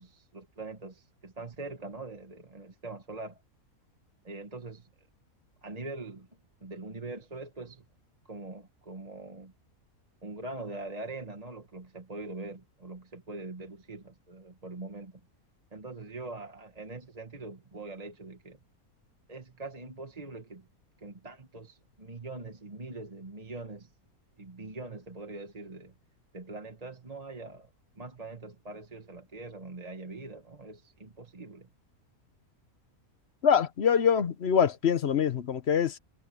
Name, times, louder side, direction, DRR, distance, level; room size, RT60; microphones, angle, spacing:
voice 1, 0.0-3.4 4.2-4.9 5.6-6.3 6.6-7.8 8.2-9.5 10.2-15.2 15.7-18.6 19.3-20.7 21.0-23.9 24.4-25.9 26.3-27.7 27.9-31.7, right 3 dB, 25° right, 1.6 m, -43 dB
voice 2, 33.4-36.0, left 7 dB, 50° left, 1.0 m, -24 dB
omnidirectional pair, 1.5 m